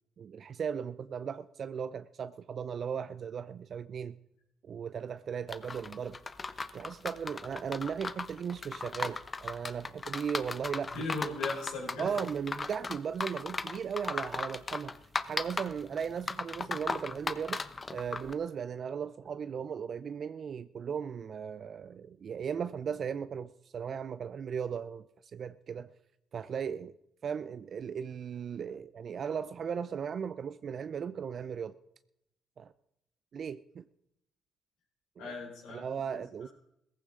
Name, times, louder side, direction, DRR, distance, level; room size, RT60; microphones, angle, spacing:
voice 1, 0.2-4.2 4.6-6.2 6.7-11.1 12.0-15.0 15.2-17.6 17.9-25.9 26.3-26.9 27.2-31.8 32.6-32.7 33.3-33.8 35.2-35.3 35.7-36.5, right 7 dB, 55° right, 0.5 m, -37 dB
sound 1, 5.5-18.3, left 4 dB, 30° left, 0.9 m, -37 dB
voice 2, 10.9-12.1 35.2-36.2, left 3 dB, 80° left, 5.0 m, -38 dB
17.5 x 15.0 x 3.8 m
supercardioid pair, 65°, 0 cm